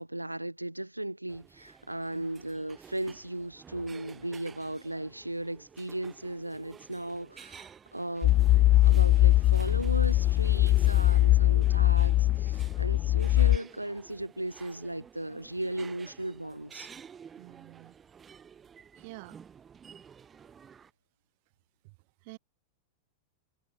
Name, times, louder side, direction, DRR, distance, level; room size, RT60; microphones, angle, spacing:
voice 1, 0.0-16.9, right 1 dB, 85° right, 1.4 m, -36 dB
sound 1, 1.3-20.9, right 7 dB, 20° right, 7.7 m, -52 dB
sound 2, 8.2-13.6, left 15 dB, 35° left, 1.0 m, -22 dB
voice 2, 17.4-18.0 19.0-19.4 21.8-21.9 22.2-22.4, right 28 dB, 45° right, 6.1 m, -48 dB
figure-of-eight pair, 90°, 0 cm